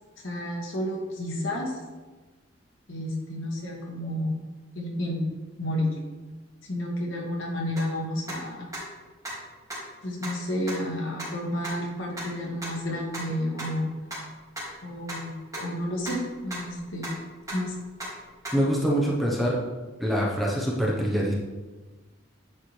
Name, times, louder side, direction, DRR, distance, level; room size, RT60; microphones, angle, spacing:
voice 1, 0.2-1.8 2.9-4.3 4.8-5.2 5.6-5.9 6.7-8.7 10.0-13.9 14.8-16.2 16.4-17.1 17.5-17.7, left 1 dB, 80° left, -2 dB, 1.9 m, -31 dB
sound 1, 7.8-7.9 8.3-8.4 8.7-8.8 9.2-9.3 9.7-9.8 10.2-10.3 10.7-10.8 11.2-11.3 11.6-11.7 12.2-12.3 12.6-12.7 13.1-13.2 13.6-13.7 14.1-14.2 14.6-14.7 15.1-15.2 15.5-15.6 15.9-16.2 16.5-17.1 17.5-17.7 18.0-18.1 18.4-18.5, right 1 dB, 15° right, 2.3 m, -35 dB
voice 2, 18.5-19.6 20.0-21.3, equal, ahead, -5 dB, 1.1 m, -24 dB
9.5 x 4.8 x 3.3 m, 1.3 s
head